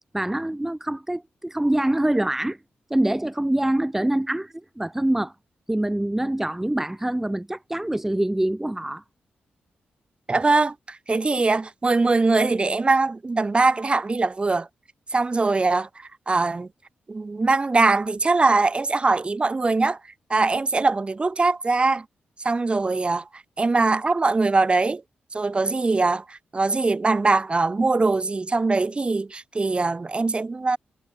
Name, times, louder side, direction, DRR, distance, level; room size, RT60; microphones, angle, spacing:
voice 1, 0.1-2.6 2.9-5.3 5.7-9.0, right 1 dB, 10° right, 1.5 m, -25 dB
voice 2, 10.3-14.7 15.1-16.7 17.1-20.0 20.3-22.1 22.4-25.0 25.3-30.8, right 3 dB, 30° right, 2.3 m, -22 dB
cardioid pair, 85°, 4 cm